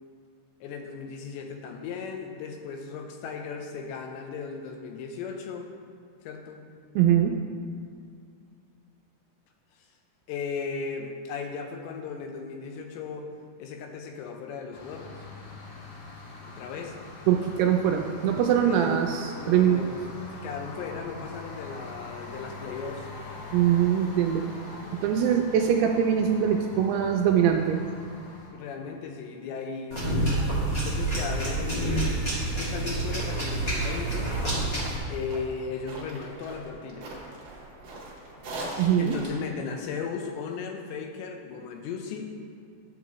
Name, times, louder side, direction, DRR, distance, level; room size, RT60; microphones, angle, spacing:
voice 1, 0.6-5.7 6.2-6.6 10.3-13.3 13.6-15.3 16.5-17.0 18.6-20.0 20.3-23.1 28.5-30.3 30.8-34.3 35.1-37.1 39.0-42.3, left 5 dB, 90° left, 4 dB, 3.0 m, -36 dB
voice 2, 7.0-7.4 17.3-19.8 23.5-24.4 25.0-27.8 38.8-39.2, right 9 dB, 85° right, 2 dB, 2.4 m, -22 dB
sound 1, 14.7-28.5, left 2 dB, 70° left, 2.5 m, -43 dB
sound 2, 29.9-35.0, right 1 dB, 30° left, 1.8 m, -28 dB
sound 3, 32.7-39.4, right 1 dB, 60° right, 1.8 m, -42 dB
11.0 x 7.6 x 3.0 m, 2.3 s
omnidirectional pair, 5.0 m